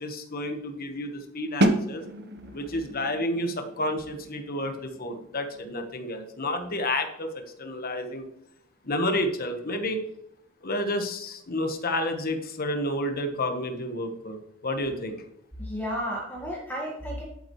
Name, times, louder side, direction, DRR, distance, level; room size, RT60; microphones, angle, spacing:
voice 1, 0.0-2.0 2.5-8.3 8.8-10.0 10.6-14.4 14.6-15.2, left 1 dB, 45° left, 6 dB, 1.3 m, -30 dB
sound 1, 1.6-7.3, right 1 dB, 55° right, 1.1 m, -31 dB
voice 2, 15.6-17.2, equal, 10° left, -4 dB, 1.8 m, -32 dB
11.0 x 9.0 x 3.2 m, 0.74 s
head